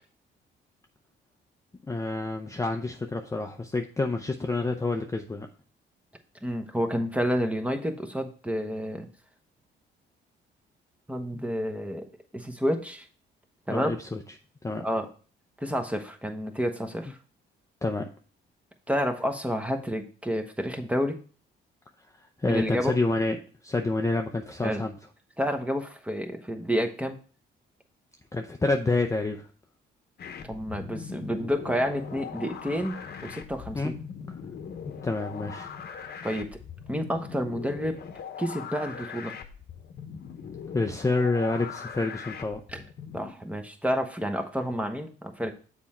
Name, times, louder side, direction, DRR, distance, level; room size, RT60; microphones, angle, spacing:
voice 1, 1.9-5.5 11.3-11.4 13.7-14.2 14.6-14.9 17.8-18.1 22.4-23.4 23.6-24.9 28.3-29.5 33.7-33.9 35.0-35.7 40.7-42.6, left 3 dB, 15° left, 4 dB, 0.6 m, -28 dB
voice 2, 6.4-9.1 11.1-12.1 12.3-13.1 13.7-13.9 14.8-15.1 15.6-17.2 18.9-21.2 22.4-22.9 24.6-24.8 25.4-27.2 30.4-33.0 33.2-33.9 36.2-36.6 36.9-38.0 38.4-39.3 42.7-42.8 43.1-45.5, equal, 5° right, 5 dB, 1.0 m, -29 dB
sound 1, 30.2-43.3, left 7 dB, 55° left, 0.9 m, -41 dB
7.0 x 4.4 x 4.2 m, 0.39 s
cardioid pair, 90°, 20 cm